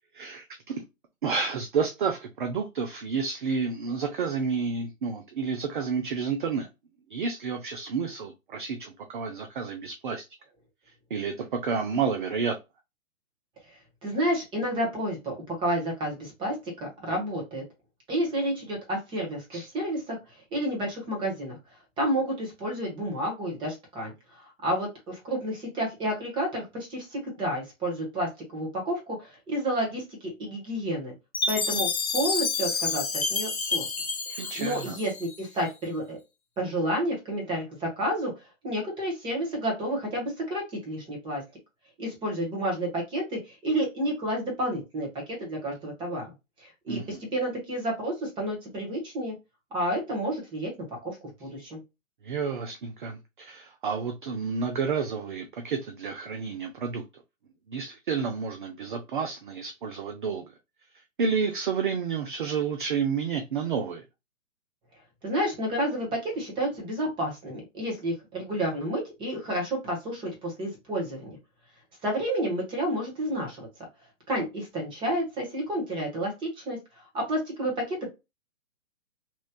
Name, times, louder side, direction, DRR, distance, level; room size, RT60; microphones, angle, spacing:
voice 1, 0.1-0.8 1.2-6.7 7.1-10.2 11.1-12.6 19.5-19.7 34.4-34.9 46.9-47.2 52.2-57.2 57.7-60.5 61.2-64.0, right 5 dB, 40° right, 0.5 m, -30 dB
voice 2, 13.7-17.6 18.1-20.2 20.5-21.6 22.0-31.1 31.5-33.8 34.3-36.2 36.6-38.3 38.6-41.4 42.0-45.1 45.4-46.3 46.6-49.3 49.7-50.7 51.0-51.8 65.2-71.4 72.0-73.7 74.3-76.8 77.1-78.1, right 1 dB, 10° right, 1.3 m, -30 dB
Chime, 31.3-35.6, left 4 dB, 90° left, 1.0 m, -29 dB
3.0 x 3.0 x 2.2 m
hypercardioid pair, 140°, 41 cm